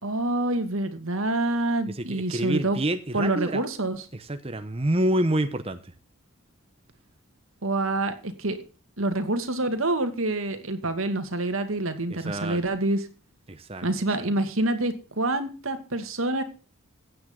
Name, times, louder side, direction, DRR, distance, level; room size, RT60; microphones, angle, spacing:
voice 1, 0.0-2.8 3.1-4.0 7.6-8.6 9.0-13.1 13.8-16.4, right 2 dB, 80° right, 9 dB, 2.3 m, -27 dB
voice 2, 1.9-3.6 4.1-5.9 12.1-12.6 13.5-13.8, right 1 dB, 25° right, 9 dB, 0.9 m, -27 dB
15.5 x 9.4 x 3.9 m, 0.36 s
head